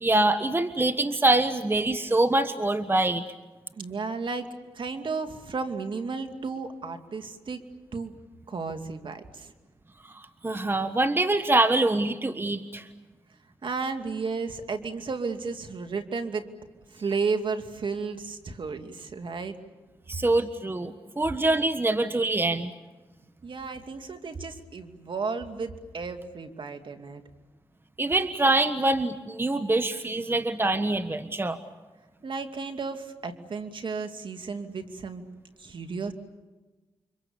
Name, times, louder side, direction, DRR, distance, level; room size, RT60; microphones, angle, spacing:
voice 1, 0.0-3.2 10.1-12.9 20.1-22.7 28.0-31.6, right 2 dB, 20° right, 10 dB, 1.4 m, -24 dB
voice 2, 3.8-4.5 4.7-7.6 7.9-8.1 8.5-9.5 13.6-16.5 16.9-19.5 23.4-27.2 32.2-35.2 35.6-36.1, right 4 dB, 55° right, 7 dB, 2.5 m, -33 dB
29.5 x 25.0 x 7.2 m, 1.2 s
supercardioid pair, 50°, 10 cm